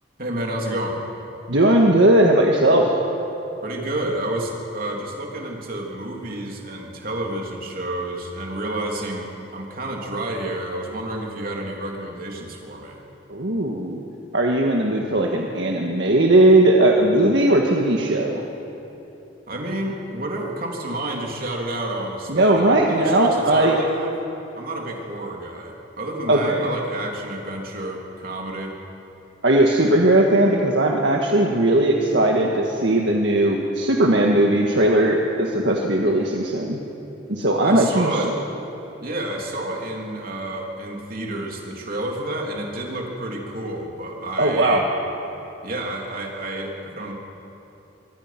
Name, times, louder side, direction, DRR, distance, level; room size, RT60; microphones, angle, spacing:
voice 1, 0.2-1.0 3.6-13.0 19.5-24.2 24.6-28.7 37.6-38.3 39.0-44.8 45.6-47.1, right 1 dB, 50° right, 0 dB, 3.4 m, -30 dB
voice 2, 1.5-2.9 13.3-14.0 14.3-18.4 22.3-23.8 26.3-26.7 29.4-36.8 37.3-38.1 44.4-44.8, right 1 dB, 70° right, 0 dB, 1.8 m, -18 dB
24.5 x 24.0 x 6.1 m, 2.9 s
head